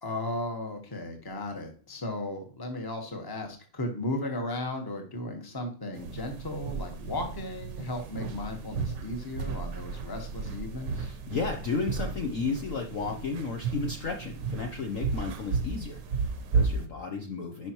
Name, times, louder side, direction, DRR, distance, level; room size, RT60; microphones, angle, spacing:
voice 1, 0.0-11.1, left 1 dB, 15° left, 4 dB, 1.0 m, -35 dB
sound 1, 5.9-16.9, right 5 dB, 70° right, 1.4 m, -33 dB
voice 2, 11.0-17.7, left 4 dB, 55° left, 3 dB, 1.0 m, -33 dB
10.5 x 5.0 x 2.9 m, 0.43 s
omnidirectional pair, 2.0 m